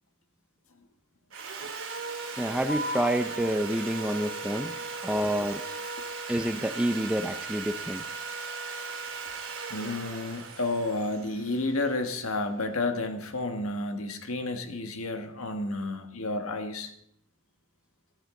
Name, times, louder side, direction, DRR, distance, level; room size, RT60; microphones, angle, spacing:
Sawing, 1.3-12.4, right 4 dB, 65° right, 2.2 m, -38 dB
voice 1, 2.4-4.8 5.0-5.6 6.3-8.0, right 1 dB, 5° right, 9 dB, 0.4 m, -28 dB
sound 1, 2.7-9.7, left 2 dB, 40° right, 2.5 m, -44 dB
voice 2, 9.7-16.9, left 2 dB, 70° left, 6 dB, 1.5 m, -31 dB
14.0 x 13.5 x 3.8 m, 0.71 s
head